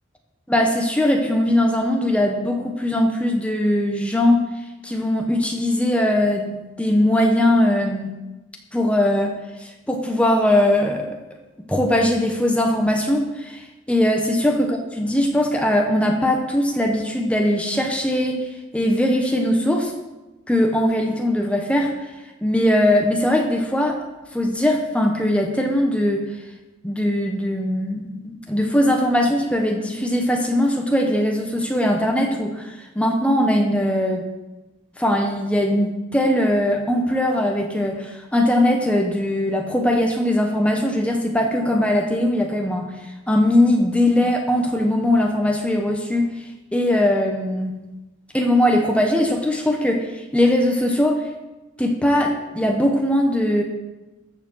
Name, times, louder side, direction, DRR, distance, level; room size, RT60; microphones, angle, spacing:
voice 1, 0.5-4.4 4.8-8.1 8.7-9.3 9.6-11.1 11.7-18.5 18.7-19.9 20.5-21.9 22.4-24.0 24.3-26.3 26.8-34.2 35.0-42.9 43.3-46.3 46.7-47.7 48.3-50.1 50.3-51.2 51.8-53.6, left 1 dB, 5° left, 2 dB, 1.1 m, -20 dB
14.5 x 5.0 x 6.4 m, 1.1 s
head